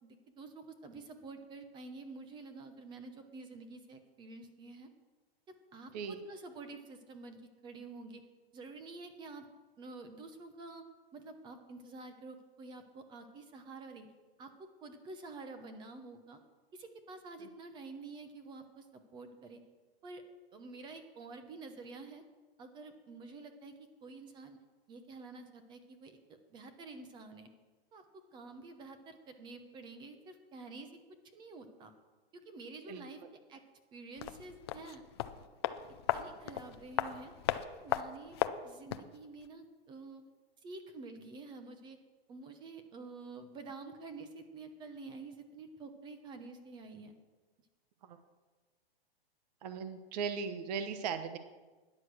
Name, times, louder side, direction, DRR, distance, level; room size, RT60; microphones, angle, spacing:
voice 1, 0.0-4.9 5.5-8.2 8.5-9.5 9.8-10.8 11.1-14.1 14.4-16.4 16.7-19.6 20.0-20.2 20.5-22.2 22.6-23.7 24.0-24.6 24.9-27.5 27.9-28.0 28.3-30.9 31.3-31.9 32.3-33.6 33.9-35.0 35.6-35.7 36.1-37.3 37.7-38.4 38.6-40.2 40.6-42.0 42.3-47.1, right 3 dB, 15° right, 8 dB, 0.9 m, -49 dB
sound 1, 34.2-39.2 39.4-39.5, left 12 dB, 25° left, 0.4 m, -36 dB
voice 2, 49.6-51.4, right 6 dB, 40° right, 9 dB, 1.1 m, -38 dB
13.0 x 10.0 x 6.2 m, 1.3 s
hypercardioid pair, 160°, 31 cm